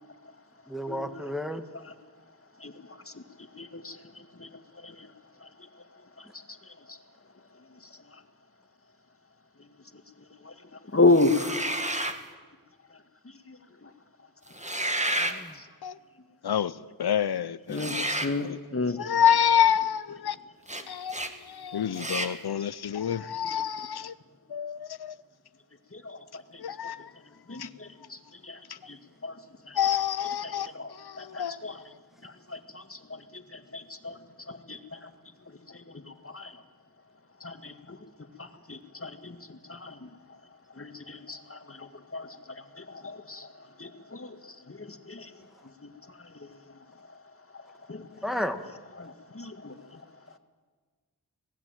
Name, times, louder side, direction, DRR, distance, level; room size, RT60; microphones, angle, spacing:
voice 1, 0.7-1.6 15.2-15.6 48.2-48.6, equal, ahead, 1.7 m, -32 dB
voice 2, 3.6-4.0 4.4-4.5 4.8-5.1 5.4-5.5 6.2-6.3 6.9-7.0 10.4-10.5 10.9-11.7 13.5-13.6 13.8-13.9 15.3-15.4 17.7-18.0 18.2-19.0 22.2-22.3 25.9-26.2 26.5-26.6 27.5-28.2 28.4-28.6 28.9-29.0 29.2-29.3 29.7-29.8 30.4-30.9 31.2-31.8 32.2-34.2 34.5-35.1 35.7-36.5 37.4-38.0 38.4-40.1 40.8-43.5 43.8-44.4 44.7-45.3 45.8-45.9 46.4-46.5 47.5-47.6 47.9-48.1 49.0-50.0, left 3 dB, 35° left, 2.0 m, -32 dB
sound 1, 11.1-12.2 14.5-15.4 17.7-18.3 20.7-20.8 21.1-21.3 22.0-22.3, right 1 dB, 20° right, 1.9 m, -30 dB
voice 3, 16.4-18.6 19.0-20.4 20.9-24.1 24.5-25.2 26.6-27.1 27.5-27.7 28.7-28.8 29.7-31.6, left 9 dB, 90° left, 0.7 m, -28 dB
27.5 x 19.0 x 9.1 m
wide cardioid pair, 75°, 37 cm